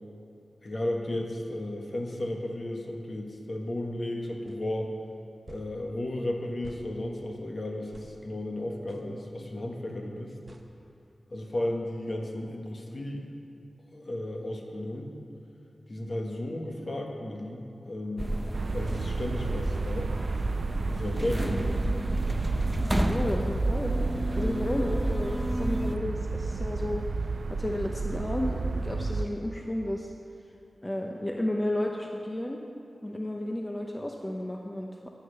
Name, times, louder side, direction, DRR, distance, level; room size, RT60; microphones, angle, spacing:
voice 1, 0.6-4.9 5.5-10.3 11.3-13.3 13.9-15.1 15.9-18.4 18.7-20.1 20.9-22.1, left 1 dB, 50° left, 1 dB, 1.5 m, -34 dB
sound 1, 4.5-4.6 5.5-5.7 6.6-6.9 7.9-8.1 8.9-9.1 10.5-10.7, right 2 dB, 45° right, 0.9 m, -49 dB
sound 2, 18.2-26.0, right 1 dB, 15° right, 0.6 m, -32 dB
sound 3, 18.5-29.3, right 3 dB, 75° right, 0.5 m, -31 dB
voice 2, 23.1-24.0 24.4-27.2 27.5-30.1 30.8-32.6 33.0-35.1, left 1 dB, 20° left, 1 dB, 0.8 m, -32 dB
9.9 x 9.3 x 6.9 m, 2.5 s
wide cardioid pair, 95°, 0 cm